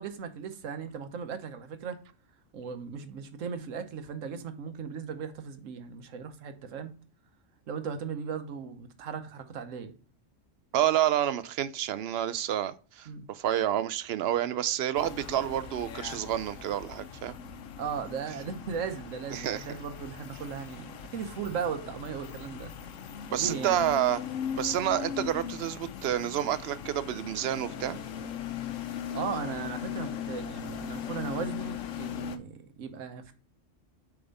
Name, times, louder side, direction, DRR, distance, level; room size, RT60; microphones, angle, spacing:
voice 1, 0.0-2.0 2.5-6.9 7.7-9.9 13.1-13.3 17.8-22.7 23.3-23.8 29.1-33.3, right 6 dB, 80° right, 1.2 m, -37 dB
voice 2, 10.7-17.3 19.3-19.6 23.3-24.2 24.6-28.0, right 11 dB, 65° right, 0.7 m, -29 dB
sound 1, 15.0-32.4, left 8 dB, 85° left, 1.1 m, -39 dB
6.8 x 3.5 x 5.2 m
omnidirectional pair, 1.3 m